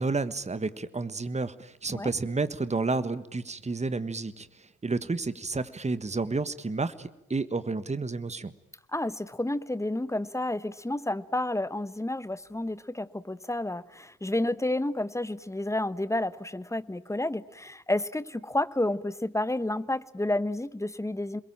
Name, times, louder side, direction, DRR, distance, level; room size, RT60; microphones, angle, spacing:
voice 1, 0.0-8.5, right 3 dB, 15° right, 14 dB, 1.5 m, -31 dB
voice 2, 8.9-21.4, left 1 dB, 5° left, 16 dB, 1.1 m, -30 dB
28.5 x 22.0 x 8.9 m, 0.86 s
figure-of-eight pair, 45°, 41 cm